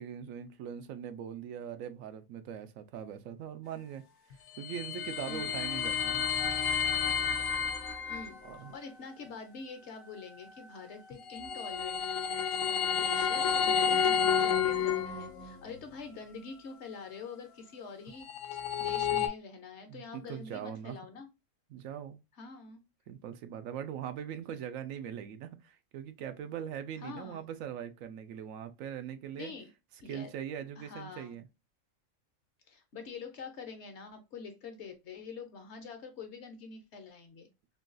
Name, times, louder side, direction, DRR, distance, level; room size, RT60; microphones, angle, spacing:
voice 1, 0.0-4.0 4.6-6.3 8.4-8.7 13.7-13.8 19.9-21.0 21.7-22.2 23.1-29.5 30.1-31.5, right 9 dB, 85° right, 1.0 m, -41 dB
sound 1, 4.3-8.3 11.1-15.5 18.1-19.3, left 7 dB, 85° left, 1.0 m, -30 dB
voice 2, 5.3-5.6 8.1-8.4 8.7-12.0 12.6-21.3 22.4-22.8 27.0-27.4 29.3-29.7 30.0-30.3 30.8-31.4 32.7-37.5, left 5 dB, 65° left, 1.0 m, -45 dB
3.8 x 2.3 x 2.4 m
omnidirectional pair, 1.4 m